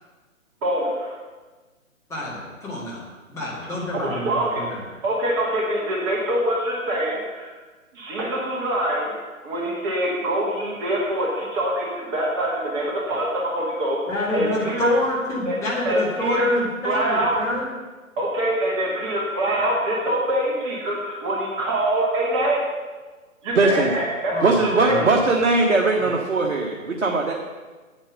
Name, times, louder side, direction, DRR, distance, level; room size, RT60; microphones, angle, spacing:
voice 1, 0.6-1.2 3.9-4.7 5.0-7.5 7.9-9.1 9.4-15.0 15.5-15.6 15.9-16.5 16.8-17.3 18.2-22.7 23.4-25.1, right 1 dB, 20° right, -4 dB, 1.7 m, -24 dB
voice 2, 2.1-3.0 3.3-4.8 14.1-17.7 24.3-25.2 26.0-26.1 26.4-26.5, left 1 dB, 5° left, -7 dB, 2.2 m, -28 dB
voice 3, 23.5-23.9 24.4-27.3, right 3 dB, 55° right, 0 dB, 1.4 m, -20 dB
8.8 x 8.5 x 6.6 m, 1.3 s
figure-of-eight pair, 135°, 42 cm